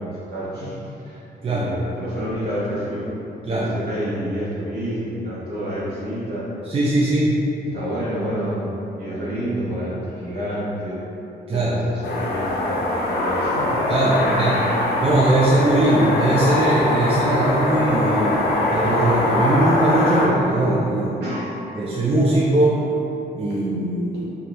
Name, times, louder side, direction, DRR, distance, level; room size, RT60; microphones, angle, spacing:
voice 1, 0.0-6.5 7.6-11.0 11.5-13.8 14.1-14.5 21.2-21.5, equal, 75° right, -8 dB, 1.0 m, -29 dB
voice 2, 6.7-7.4 11.5-11.7 13.9-14.6 15.0-18.4 18.7-21.2 21.7-22.8 23.3-24.2, right 2 dB, 35° right, -6 dB, 0.5 m, -20 dB
sound 1, 12.0-20.3, left 1 dB, 75° left, 0.6 m, -22 dB
4.4 x 2.5 x 3.1 m, 2.9 s
cardioid pair, 90°, 17 cm